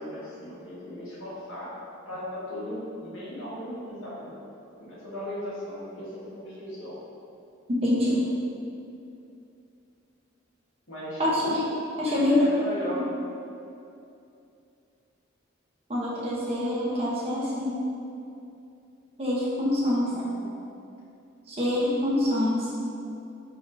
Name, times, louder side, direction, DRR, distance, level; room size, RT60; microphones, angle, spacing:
voice 1, 0.0-1.7 2.1-4.3 4.6-7.0 10.9-11.2 12.0-13.0 19.8-20.5, equal, 85° left, -9 dB, 1.4 m, -37 dB
voice 2, 7.8-8.2 11.2-11.7 12.0-12.5 12.9-13.1 15.9-17.8 19.2-20.3 21.5-22.7, left 1 dB, 30° right, -6 dB, 0.8 m, -25 dB
5.0 x 3.4 x 2.6 m, 2.6 s
head